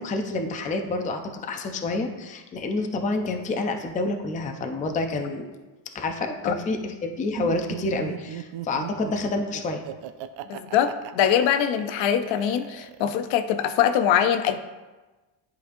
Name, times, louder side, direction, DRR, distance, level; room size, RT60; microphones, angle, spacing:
voice 1, 0.0-5.5 5.9-9.8, left 2 dB, 20° left, 4 dB, 0.4 m, -28 dB
Laughter, 7.4-13.3, right 12 dB, 70° right, 0.5 m, -37 dB
voice 2, 10.5-14.6, left 9 dB, 70° left, 9 dB, 0.6 m, -23 dB
11.0 x 4.1 x 2.6 m, 1.2 s
cardioid pair, 140°, 47 cm